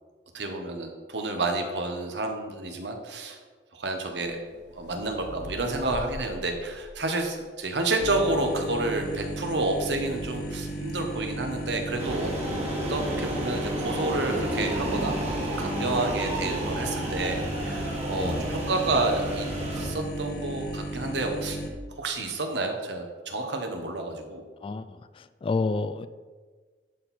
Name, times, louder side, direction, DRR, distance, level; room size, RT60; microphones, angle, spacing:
voice 1, 0.3-3.4 3.7-4.4 4.8-12.3 12.9-19.5 19.7-21.6 22.0-24.4, right 2 dB, 70° right, 4 dB, 1.1 m, -30 dB
sound 1, 4.1-8.2 9.1-11.5 14.8-15.7 16.1-16.5, left 1 dB, 80° left, 1.2 m, -45 dB
sound 2, 8.0-21.7, right 1 dB, 55° left, 1.0 m, -35 dB
sound 3, 12.0-19.9, right 1 dB, 40° right, 1.7 m, -32 dB
voice 2, 24.6-26.1, left 3 dB, 30° left, 13 dB, 0.3 m, -30 dB
11.0 x 4.5 x 4.2 m, 1.4 s
head